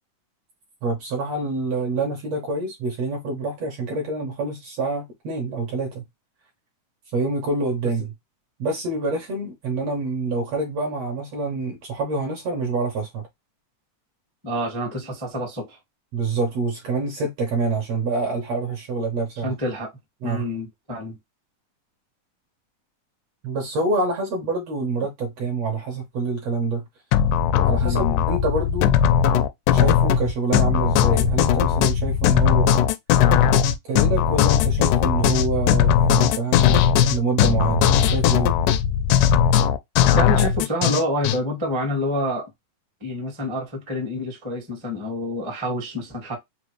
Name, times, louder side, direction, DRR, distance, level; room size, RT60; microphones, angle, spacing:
voice 1, 0.8-6.0 7.1-8.1 8.6-13.2 16.1-19.5 20.2-20.5 23.4-26.8 27.6-28.9 29.7-32.7 33.8-36.8 37.1-38.6, right 3 dB, 65° right, 1.7 m, -26 dB
voice 2, 14.4-15.8 19.4-19.9 20.2-21.2 27.8-28.2 40.1-42.5 43.0-46.3, left 1 dB, 20° right, 0.7 m, -27 dB
sound 1, 27.1-41.4, left 9 dB, 80° left, 1.8 m, -18 dB
5.1 x 2.7 x 3.0 m
omnidirectional pair, 4.0 m